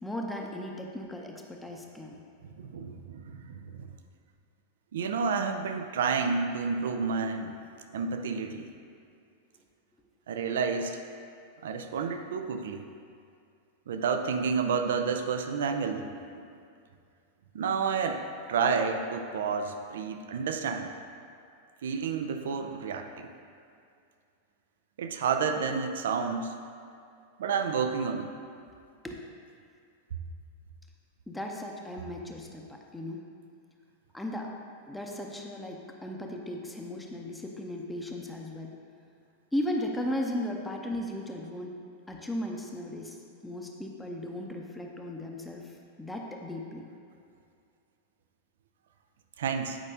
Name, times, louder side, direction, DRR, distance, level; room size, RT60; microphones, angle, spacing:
voice 1, 0.0-2.2 18.0-18.1 29.0-29.2 31.3-33.2 34.1-34.5 34.9-38.7 39.5-41.7 42.1-43.2 43.4-46.8, left 1 dB, 5° left, 0 dB, 0.7 m, -36 dB
voice 2, 2.6-3.9 4.9-7.5 7.9-8.7 10.3-11.0 11.6-12.8 13.9-16.4 17.5-20.9 21.8-23.3 25.0-26.6 27.4-28.3 49.4-49.8, right 5 dB, 60° right, 6 dB, 0.4 m, -30 dB
8.5 x 5.2 x 2.7 m, 2.4 s
figure-of-eight pair, 90°, 0 cm